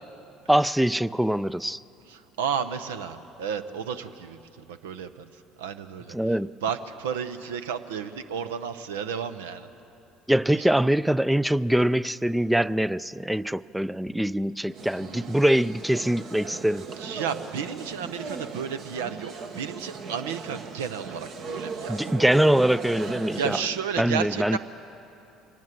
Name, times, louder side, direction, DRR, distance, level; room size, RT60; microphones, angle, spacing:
voice 1, 0.5-1.8 6.1-6.5 10.3-16.8 21.9-23.6 24.0-24.6, right 1 dB, 5° right, 0.4 m, -23 dB
voice 2, 2.1-5.1 5.6-6.1 6.6-9.7 10.6-10.7 15.0-15.3 17.0-22.1 23.3-24.6, right 7 dB, 75° right, 0.7 m, -32 dB
sound 1, 14.7-23.8, right 5 dB, 55° right, 1.5 m, -38 dB
23.5 x 18.0 x 7.5 m
figure-of-eight pair, 60°, 0 cm